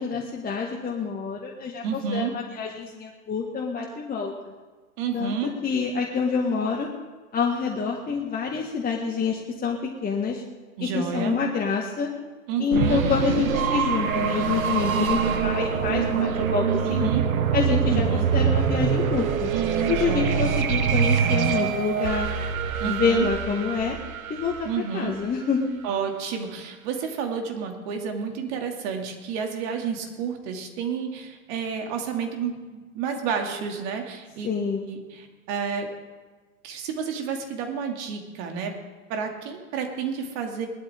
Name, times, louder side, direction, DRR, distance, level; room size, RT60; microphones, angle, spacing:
voice 1, 0.0-4.5 5.1-6.9 7.3-10.4 10.8-12.1 12.6-16.6 16.9-17.1 17.5-18.1 18.3-19.5 19.9-22.3 22.8-24.0 24.3-24.7 24.9-25.7 34.4-34.8, left 5 dB, 20° left, 0 dB, 1.6 m, -27 dB
voice 2, 1.8-2.3 5.0-5.5 10.8-11.4 12.5-13.0 17.0-17.3 17.9-18.3 19.5-20.5 22.8-23.3 24.6-25.1 25.8-34.5 34.9-35.9 36.6-38.7 39.1-40.7, right 6 dB, 50° right, 3 dB, 2.6 m, -30 dB
sound 1, 12.7-25.4, right 7 dB, 75° right, 1.2 m, -24 dB
19.5 x 12.5 x 3.7 m, 1.3 s
figure-of-eight pair, 90°, 42 cm